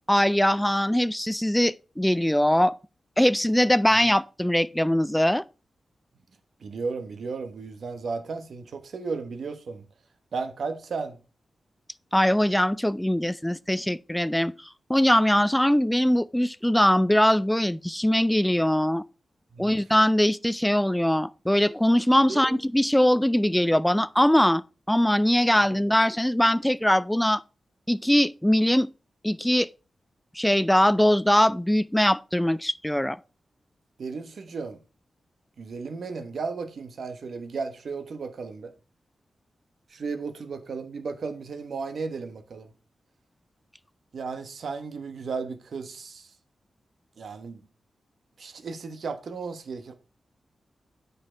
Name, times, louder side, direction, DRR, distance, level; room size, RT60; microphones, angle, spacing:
voice 1, 0.1-2.7 3.2-5.4 12.1-14.5 14.9-19.0 19.6-24.6 24.9-27.4 27.9-28.9 29.2-29.7 30.4-33.2, left 1 dB, 5° left, 0.3 m, -21 dB
voice 2, 6.6-9.9 10.3-11.2 19.5-19.8 22.3-22.6 34.0-34.8 35.6-38.7 39.9-42.7 44.1-46.3 47.2-47.6 48.4-49.9, right 4 dB, 65° right, 1.1 m, -34 dB
8.8 x 5.4 x 4.5 m
wide cardioid pair, 125°, 0 cm